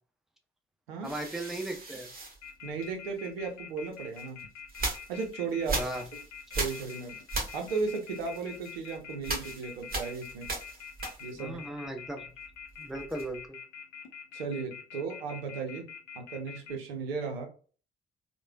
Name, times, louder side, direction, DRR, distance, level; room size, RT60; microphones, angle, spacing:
voice 1, 1.0-2.1 5.7-6.0 11.4-12.3 12.8-13.6, right 1 dB, ahead, 3 dB, 0.6 m, -37 dB
sound 1, 1.0-3.3 3.9-11.6 11.9-13.5, right 2 dB, 30° right, 1.0 m, -38 dB
Telephone, 2.4-16.7, left 7 dB, 70° left, 0.6 m, -45 dB
voice 2, 2.6-4.5 5.1-5.9 6.5-7.2 7.5-10.5 11.2-11.6 14.3-15.9 16.1-17.5, right 5 dB, 80° right, 4 dB, 0.5 m, -35 dB
3.0 x 2.1 x 2.2 m, 0.39 s
figure-of-eight pair, 40°, 29 cm